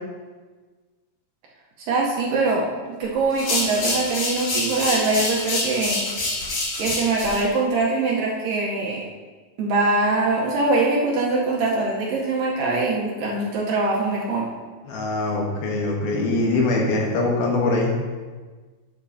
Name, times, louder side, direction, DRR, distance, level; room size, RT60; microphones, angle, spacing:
voice 1, 1.9-2.7 3.0-6.0 6.8-9.0 9.6-14.5, right 3 dB, 70° right, -3 dB, 2.3 m, -23 dB
sound 1, 3.3-7.4, left 2 dB, 55° left, 3.6 m, -26 dB
voice 2, 14.9-17.9, left 2 dB, 75° left, -1 dB, 2.9 m, -22 dB
11.5 x 6.9 x 2.7 m, 1.4 s
omnidirectional pair, 4.7 m